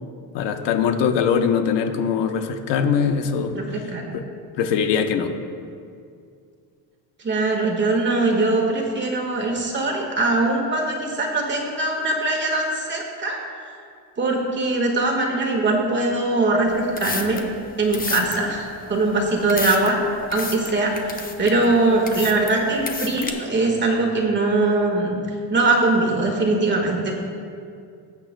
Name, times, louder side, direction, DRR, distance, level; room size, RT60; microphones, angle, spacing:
voice 1, 0.3-3.6 4.1-4.2 4.6-5.3, left 7 dB, 85° left, 6 dB, 0.9 m, -21 dB
voice 2, 3.5-4.1 7.2-13.4 14.2-17.4 17.8-20.0 20.3-25.1 25.5-27.1, right 2 dB, 25° right, 1 dB, 1.6 m, -21 dB
sound 1, 16.7-23.3, left 4 dB, 20° left, 0.7 m, -32 dB
19.5 x 8.8 x 2.2 m, 2.3 s
cardioid pair, 160°, 41 cm